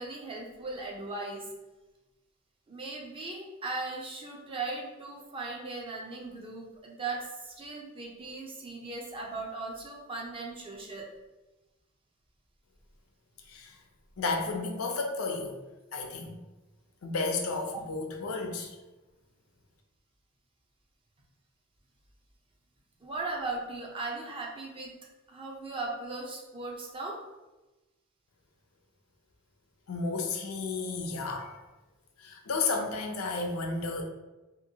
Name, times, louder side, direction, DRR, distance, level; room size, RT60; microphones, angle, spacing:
voice 1, 0.0-1.5 2.7-11.1 23.0-24.9 25.3-27.2, right 3 dB, 25° right, -1 dB, 0.5 m, -38 dB
voice 2, 14.2-15.5 15.9-16.4 17.0-18.8 29.9-31.6 32.2-34.0, left 3 dB, 85° left, 2 dB, 0.5 m, -32 dB
2.9 x 2.5 x 2.7 m, 1.1 s
head